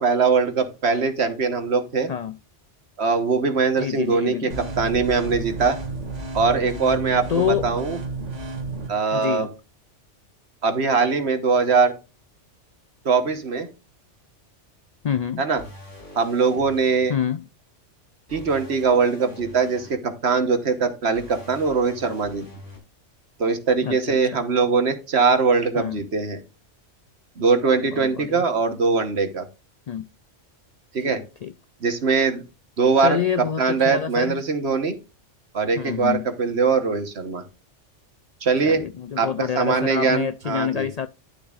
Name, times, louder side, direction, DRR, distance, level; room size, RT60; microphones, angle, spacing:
voice 1, 0.0-2.1 3.0-5.8 6.3-8.0 8.9-9.5 10.6-11.9 13.0-13.7 15.4-15.6 16.1-17.1 18.3-22.5 23.4-26.4 27.4-29.4 30.9-31.2 31.8-32.4 32.8-35.0 35.5-37.4 38.4-38.8 39.2-40.9, right 4 dB, 60° right, 1.5 m, -21 dB
voice 2, 3.8-4.5 7.3-7.7 9.1-9.5 15.0-15.4 17.1-17.4 23.8-24.0 25.8-26.0 27.9-28.4 29.9-30.1 31.1-31.5 33.0-34.4 35.8-36.2 38.6-41.1, left 8 dB, 70° left, 0.3 m, -27 dB
sound 1, 4.5-8.9, right 3 dB, 80° right, 2.0 m, -32 dB
sound 2, 15.6-17.1 18.3-19.9 21.1-22.8, equal, 85° left, 3.1 m, -44 dB
11.5 x 7.0 x 2.5 m
omnidirectional pair, 1.2 m